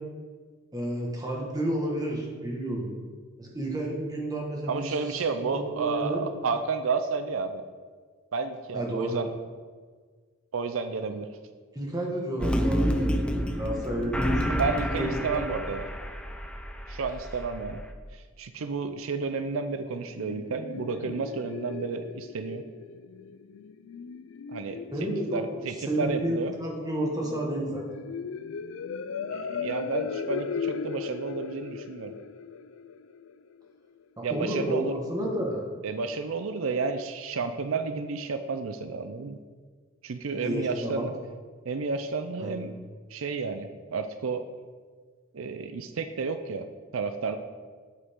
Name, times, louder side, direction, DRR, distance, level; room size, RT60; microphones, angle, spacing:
voice 1, 0.7-2.9 3.4-6.2 8.7-9.2 11.7-13.1 13.5-14.6 15.0-15.4 24.9-25.4 25.9-27.8 34.2-35.6 40.3-41.1 42.4-42.6, right 1 dB, 20° right, -1 dB, 1.6 m, -31 dB
voice 2, 4.7-7.6 8.3-9.3 10.5-11.3 14.5-15.9 16.9-17.8 18.1-22.6 24.5-26.5 29.3-32.1 34.2-34.9 35.8-39.4 40.0-41.1 41.7-42.7 43.1-44.5 45.3-46.7 46.9-47.4, right 4 dB, 85° right, 9 dB, 0.5 m, -31 dB
sound 1, 12.4-17.9, equal, 5° left, 0.5 m, -29 dB
sound 2, 19.7-33.7, left 5 dB, 70° left, 0.4 m, -38 dB
8.6 x 8.0 x 3.7 m, 1.5 s
head